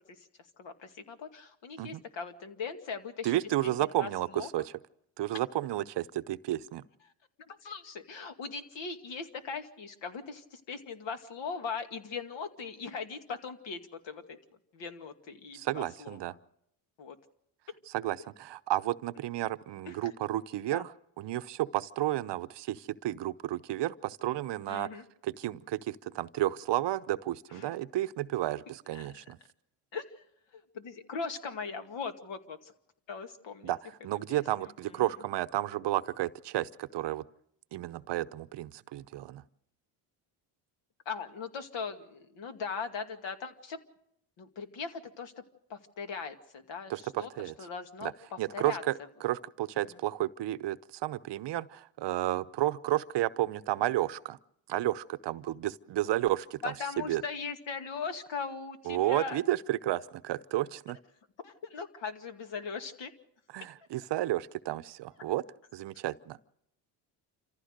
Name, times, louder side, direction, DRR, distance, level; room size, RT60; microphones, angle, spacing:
voice 1, 0.6-3.3 3.6-3.7 4.0-4.1 4.3-4.5 7.5-14.4 14.7-16.2 17.0-17.2 19.9-20.1 20.7-20.8 24.7-25.0 27.5-27.7 28.9-29.1 29.9-30.2 30.5-32.7 33.1-33.7 34.3-35.1 41.1-43.8 44.4-45.3 45.7-47.3 47.6-48.8 56.6-59.4 61.4-63.1, left 5 dB, 60° left, 7 dB, 2.3 m, -39 dB
voice 2, 3.2-4.7 5.2-6.8 15.5-16.3 17.9-24.9 25.2-29.4 33.6-37.3 37.7-39.4 46.9-47.5 48.0-48.1 48.4-48.9 49.2-54.4 54.7-57.2 58.9-61.0 63.5-65.4 65.7-66.4, right 14 dB, 55° right, 13 dB, 0.8 m, -32 dB
27.5 x 15.0 x 6.6 m, 0.78 s
supercardioid pair, 85°, 49 cm